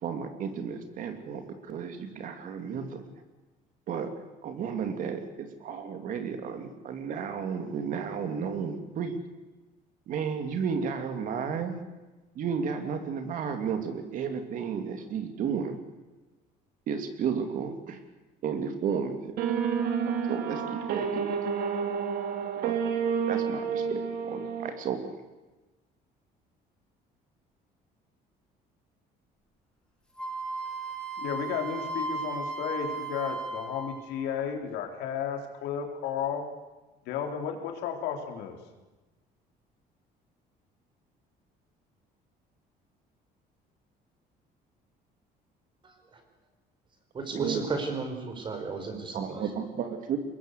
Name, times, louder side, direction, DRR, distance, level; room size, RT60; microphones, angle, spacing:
voice 1, 0.0-3.0 3.9-4.1 4.4-9.2 10.1-11.8 12.3-15.8 16.9-18.0 18.4-19.3 20.3-21.4 22.6-22.8 23.3-25.0 47.3-47.6 49.1-50.2, right 6 dB, 55° right, 7 dB, 3.0 m, -33 dB
sound 1, 19.4-24.7, right 6 dB, 70° right, 2.7 m, -29 dB
Wind instrument woodwind instrument, 30.2-34.3, right 3 dB, 5° left, 5.7 m, -35 dB
voice 2, 31.2-36.4 37.1-38.6, left 7 dB, 85° left, 3 dB, 4.2 m, -33 dB
voice 3, 45.8-46.2 47.1-49.5, right 4 dB, 30° right, 5 dB, 5.1 m, -34 dB
24.0 x 21.0 x 8.4 m, 1.2 s
cardioid pair, 155°, 17 cm